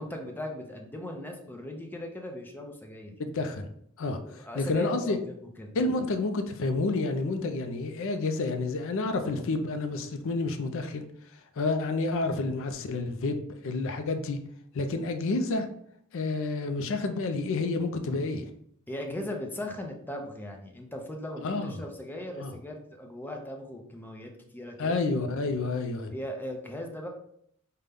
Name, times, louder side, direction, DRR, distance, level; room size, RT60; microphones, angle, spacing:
voice 1, 0.0-3.1 4.2-5.7 18.9-25.0 26.1-27.1, left 1 dB, 10° left, 2 dB, 0.6 m, -38 dB
voice 2, 3.2-3.7 4.0-5.2 5.7-11.1 11.6-14.4 14.7-15.7 16.1-18.5 21.4-21.7 22.4-22.5 24.8-26.1, left 3 dB, 65° left, 7 dB, 0.4 m, -29 dB
5.2 x 2.2 x 3.4 m, 0.68 s
head